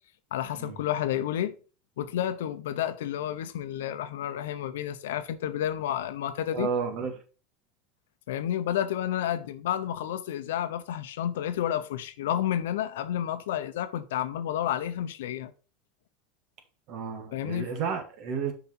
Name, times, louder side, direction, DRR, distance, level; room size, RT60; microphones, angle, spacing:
voice 1, 0.3-1.6 2.0-6.7 8.3-15.5 17.3-17.7, left 11 dB, 90° left, 0.9 m, -30 dB
voice 2, 6.5-7.1 16.9-18.5, right 6 dB, 50° right, 1.9 m, -32 dB
7.0 x 5.1 x 4.4 m
supercardioid pair, 135°, 0 cm